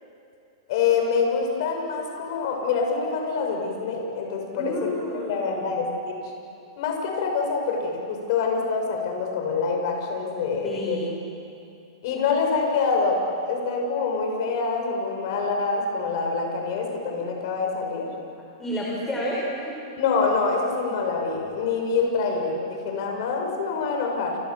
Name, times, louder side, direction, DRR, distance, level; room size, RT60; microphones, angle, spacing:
voice 1, 0.7-4.9 5.3-6.2 6.8-11.1 12.0-18.1 20.0-24.4, left 4 dB, 50° left, 2 dB, 6.5 m, -26 dB
voice 2, 4.5-5.7 10.6-11.0 18.6-19.7, equal, 10° left, -5 dB, 5.5 m, -30 dB
30.0 x 27.0 x 7.3 m, 2.7 s
hypercardioid pair, 150°, 3 cm